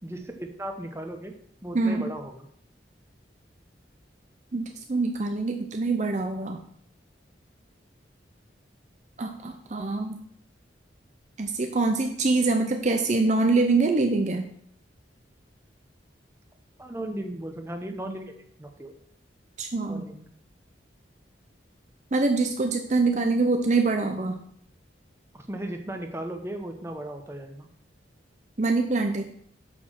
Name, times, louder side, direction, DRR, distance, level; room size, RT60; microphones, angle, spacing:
voice 1, 0.0-1.4 1.6-2.5 16.8-18.3 18.6-18.9 19.9-20.3 25.3-27.7, right 1 dB, 15° right, 4 dB, 0.9 m, -36 dB
voice 2, 1.7-2.1 4.5-6.6 9.2-10.2 11.4-14.5 19.6-20.1 22.1-24.4 28.6-29.3, right 3 dB, 40° right, 5 dB, 0.6 m, -24 dB
6.3 x 5.9 x 6.2 m, 0.68 s
head